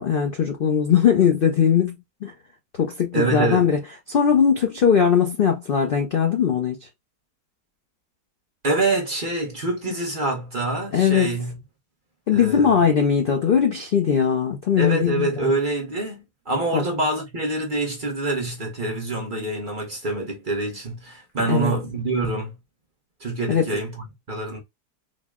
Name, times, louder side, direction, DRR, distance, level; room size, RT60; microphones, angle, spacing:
voice 1, 0.0-1.9 2.2-2.3 2.8-3.8 4.1-6.8 10.9-11.4 12.3-15.5 16.7-16.9 21.5-21.7 23.5-23.7, left 7 dB, 75° left, 0.5 m, -20 dB
voice 2, 3.1-3.7 8.6-11.6 12.3-12.7 14.8-22.6 23.2-24.6, right 2 dB, 40° right, 0.8 m, -26 dB
3.9 x 2.1 x 3.5 m
omnidirectional pair, 1.8 m